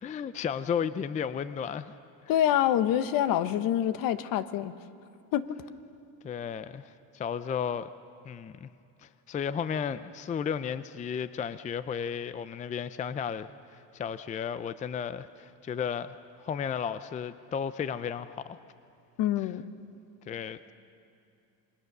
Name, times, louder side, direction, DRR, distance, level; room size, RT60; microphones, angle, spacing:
voice 1, 0.0-1.9 6.2-7.9 8.2-8.7 9.0-18.6 20.3-20.7, left 7 dB, 20° left, 14 dB, 0.5 m, -34 dB
voice 2, 2.3-4.7 5.3-5.5 19.2-19.6, left 11 dB, 60° left, 13 dB, 1.2 m, -26 dB
29.0 x 22.5 x 6.8 m, 2.7 s
cardioid pair, 130°, 38 cm